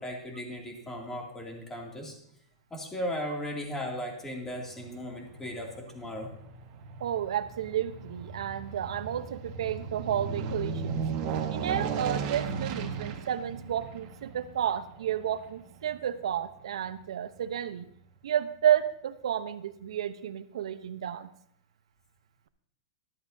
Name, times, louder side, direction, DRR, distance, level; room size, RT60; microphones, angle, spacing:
voice 1, 0.0-2.1 2.7-6.3, equal, 10° left, 0 dB, 2.4 m, -37 dB
Aircraft, 4.5-17.0 17.4-17.5, right 5 dB, 45° right, 1.5 m, -37 dB
voice 2, 7.0-11.0 11.5-17.9 18.2-21.3, right 10 dB, 80° right, 12 dB, 0.7 m, -31 dB
14.0 x 12.0 x 2.7 m, 0.72 s
hypercardioid pair, 135°, 3 cm